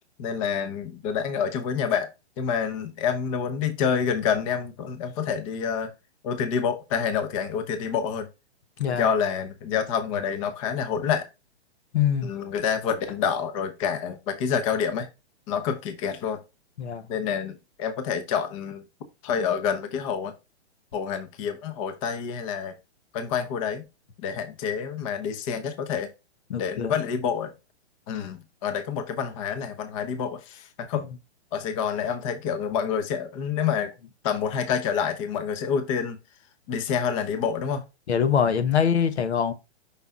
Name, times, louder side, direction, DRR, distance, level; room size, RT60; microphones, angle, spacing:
voice 1, 0.2-2.1 2.4-5.9 6.2-8.3 8.9-11.3 12.2-15.1 15.5-16.4 17.1-18.8 19.2-20.3 20.9-22.7 23.1-23.8 24.2-26.1 26.6-27.5 28.1-31.0 31.5-33.9 34.2-36.2 36.7-37.8, left 7 dB, 30° left, 1.0 m, -27 dB
voice 2, 11.9-12.3 16.8-17.1 26.5-26.9 38.1-39.5, left 7 dB, 75° left, 1.1 m, -23 dB
6.8 x 5.9 x 2.4 m
hypercardioid pair, 155°, 33 cm